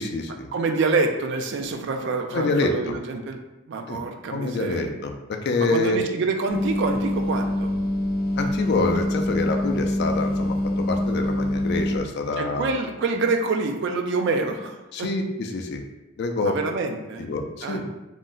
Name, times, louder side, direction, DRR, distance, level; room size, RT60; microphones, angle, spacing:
voice 1, 0.0-0.5 2.3-2.7 3.9-4.0 4.3-6.0 8.4-12.7 14.9-15.8 16.2-16.5 17.2-17.9, left 3 dB, 55° left, 3 dB, 0.3 m, -26 dB
voice 2, 0.5-3.4 3.7-4.8 5.6-7.8 12.4-15.1 16.4-17.3 17.6-17.9, right 3 dB, 55° right, 5 dB, 0.3 m, -26 dB
sound 1, 6.5-12.0, left 1 dB, 5° right, 0.6 m, -25 dB
2.5 x 2.1 x 3.7 m, 1.0 s
head